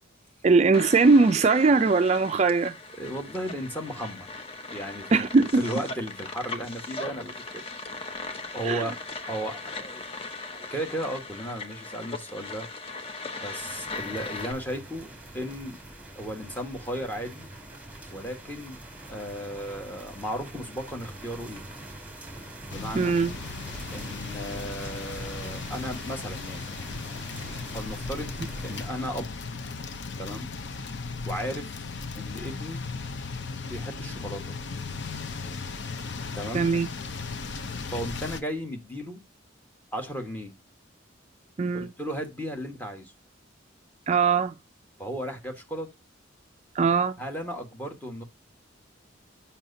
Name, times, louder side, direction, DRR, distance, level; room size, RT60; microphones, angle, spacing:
voice 1, 0.4-2.8 5.1-5.6 8.6-8.9 22.9-23.3 36.5-36.9 41.6-41.9 44.1-44.5 46.7-47.2, right 4 dB, 35° right, 0.3 m, -20 dB
sound 1, 0.7-14.5, left 3 dB, 30° left, 0.8 m, -39 dB
voice 2, 3.0-4.3 4.7-5.2 5.6-8.2 8.5-9.0 9.3-10.0 10.5-12.7 13.4-17.5 18.1-18.8 19.1-21.6 22.7-23.1 23.9-26.7 27.7-28.3 28.6-29.3 30.2-30.5 31.2-31.7 32.1-32.8 33.7-34.6 36.3-36.7 37.9-39.2 39.9-40.5 41.7-43.1 45.0-45.9 47.2-48.2, equal, 10° left, 1.3 m, -35 dB
sound 2, 13.6-28.9, right 1 dB, 10° right, 2.1 m, -44 dB
sound 3, 22.7-38.4, left 4 dB, 65° left, 0.7 m, -36 dB
7.3 x 5.6 x 2.6 m
head